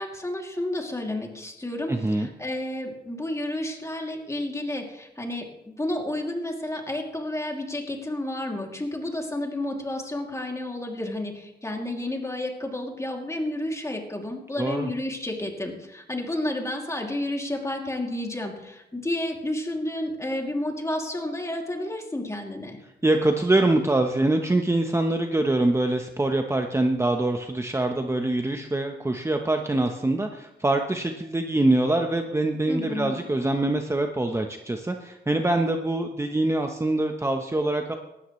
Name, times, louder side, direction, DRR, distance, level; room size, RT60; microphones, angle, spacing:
voice 1, 0.0-22.8 32.7-33.2, left 1 dB, 15° left, 1 dB, 2.8 m, -31 dB
voice 2, 1.9-2.3 14.6-14.9 23.0-38.0, right 2 dB, 15° right, 4 dB, 1.0 m, -24 dB
18.0 x 13.0 x 3.2 m, 0.92 s
cardioid pair, 85°, 18 cm